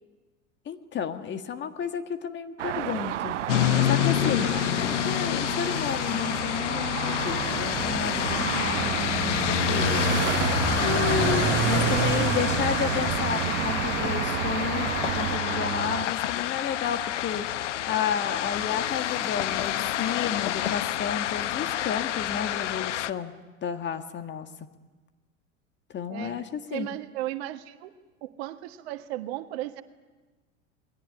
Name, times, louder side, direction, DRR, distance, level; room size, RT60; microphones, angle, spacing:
voice 1, 0.7-3.3 3.9-10.0 10.8-23.3 23.6-24.5 25.9-26.4 26.7-26.9, left 7 dB, 30° left, 8 dB, 1.7 m, -32 dB
sound 1, 2.6-16.1, right 12 dB, 70° right, 0.8 m, -34 dB
sound 2, 3.5-23.1, left 12 dB, 65° left, 1.0 m, -28 dB
sound 3, 7.2-15.4, right 12 dB, 30° right, 0.8 m, -29 dB
voice 2, 26.1-26.4 26.7-27.9 28.2-29.8, right 14 dB, 55° right, 8 dB, 1.7 m, -35 dB
28.5 x 21.5 x 9.7 m, 1.3 s
figure-of-eight pair, 85°, 38 cm